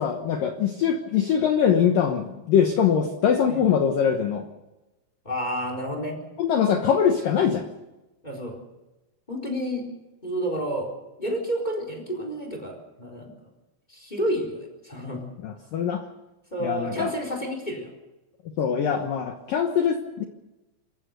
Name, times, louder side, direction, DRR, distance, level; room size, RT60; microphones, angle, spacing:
voice 1, 0.0-4.5 6.4-7.7 15.4-16.0 16.6-17.1 18.6-20.2, left 7 dB, 75° left, 6 dB, 2.0 m, -23 dB
voice 2, 5.2-6.2 8.2-8.6 9.3-9.8 10.2-10.9 11.2-13.5 13.9-15.2 16.5-17.9, equal, 10° left, 2 dB, 3.4 m, -30 dB
26.5 x 14.5 x 6.7 m, 1.0 s
omnidirectional pair, 5.8 m